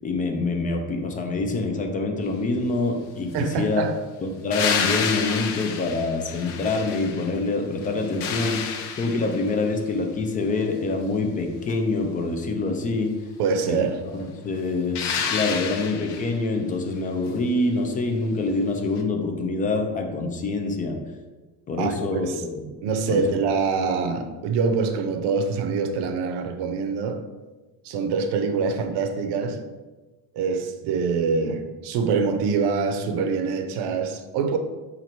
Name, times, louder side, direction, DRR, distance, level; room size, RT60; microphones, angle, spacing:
voice 1, 0.0-3.8 4.2-8.7 9.0-13.1 13.7-21.0 21.7-22.3 23.1-23.3, left 3 dB, 20° left, 0.3 m, -26 dB
voice 2, 3.3-4.0 13.4-14.0 21.8-22.4 22.8-27.3 27.8-29.7 30.3-34.6, right 5 dB, 80° right, 0.6 m, -25 dB
sound 1, 4.5-7.4 7.8-9.6 14.9-16.4 19.0-19.1, left 7 dB, 85° left, 0.6 m, -29 dB
4.2 x 2.5 x 4.4 m
cardioid pair, 155°, 40 cm